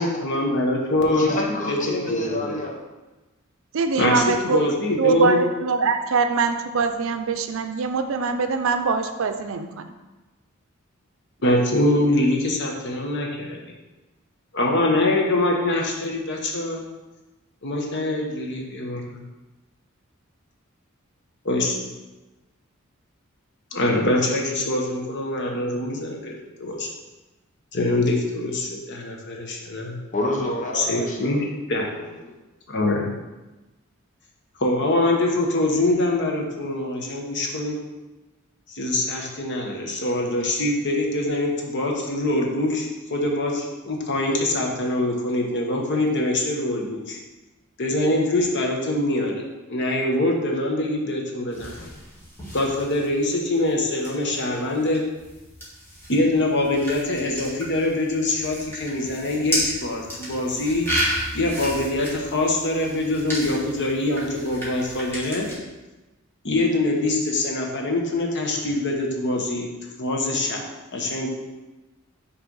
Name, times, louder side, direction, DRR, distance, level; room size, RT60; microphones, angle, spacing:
voice 1, 0.0-1.3 1.7-1.8 2.1-2.5 4.0-5.4 11.4-13.6 14.5-16.8 17.6-19.2 21.4-21.7 23.7-26.9 27.7-30.0 30.7-31.8 32.7-33.1 34.6-37.8 38.7-47.2 47.8-49.4 49.7-51.7 52.5-55.0 56.1-60.9 61.3-65.5 66.4-69.7 70.0-70.6 70.9-71.3, left 2 dB, 60° left, 0 dB, 1.1 m, -24 dB
voice 2, 1.0-2.8 30.1-31.4 31.9-32.0, left 1 dB, 35° left, 0 dB, 1.0 m, -28 dB
voice 3, 3.7-4.6 5.0-9.7, right 4 dB, 65° right, 8 dB, 0.5 m, -23 dB
sound 1, 51.5-65.5, equal, 10° left, 1.9 m, -33 dB
6.1 x 3.3 x 5.4 m, 1.1 s
head